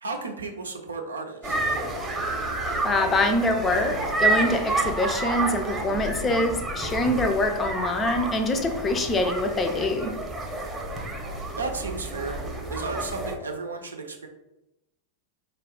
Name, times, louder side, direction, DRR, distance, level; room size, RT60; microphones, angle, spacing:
voice 1, 0.0-1.6 11.6-12.4 12.7-14.3, right 3 dB, 75° right, 3 dB, 0.6 m, -33 dB
sound 1, 1.4-13.3, right 2 dB, 10° right, 0.8 m, -29 dB
voice 2, 2.8-10.1, left 2 dB, 20° left, 6 dB, 0.5 m, -25 dB
4.5 x 2.4 x 3.6 m, 0.91 s
figure-of-eight pair, 90°, 0 cm